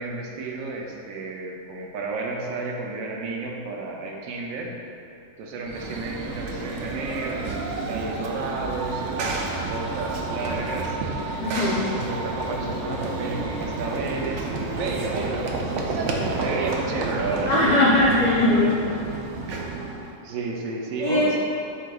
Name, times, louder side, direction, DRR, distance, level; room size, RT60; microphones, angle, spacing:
voice 1, 0.0-4.8 5.4-11.0 11.7-17.5 20.2-21.4, right 3 dB, 85° right, 0 dB, 1.0 m, -32 dB
Run / Train, 5.7-20.1, right 3 dB, 70° right, 0.8 m, -30 dB
voice 2, 11.4-11.8 17.4-18.8 21.0-21.4, left 1 dB, 75° left, -6 dB, 0.4 m, -20 dB
8.0 x 2.8 x 2.3 m, 2.6 s
omnidirectional pair, 1.4 m